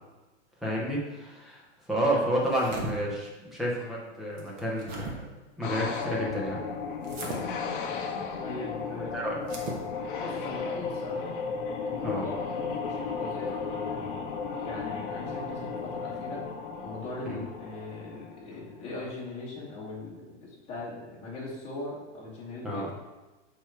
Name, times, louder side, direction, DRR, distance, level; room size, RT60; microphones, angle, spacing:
voice 1, 0.6-1.6 1.9-5.1 5.6-6.6 9.1-9.4 12.0-12.2 17.3-17.4 22.6-22.9, right 1 dB, ahead, -4 dB, 0.4 m, -30 dB
sound 1, 2.4-2.9 4.4-5.1 7.0-7.4 9.4-9.8, right 2 dB, 25° right, 0.9 m, -37 dB
sound 2, 5.6-18.6, left 5 dB, 45° left, 0.9 m, -35 dB
voice 2, 7.0-7.4 8.4-9.3 10.2-11.3 11.9-14.2 14.6-16.4 16.8-22.8, left 2 dB, 15° left, -7 dB, 2.1 m, -40 dB
6.6 x 4.5 x 4.4 m, 1.1 s
supercardioid pair, 165°, 36 cm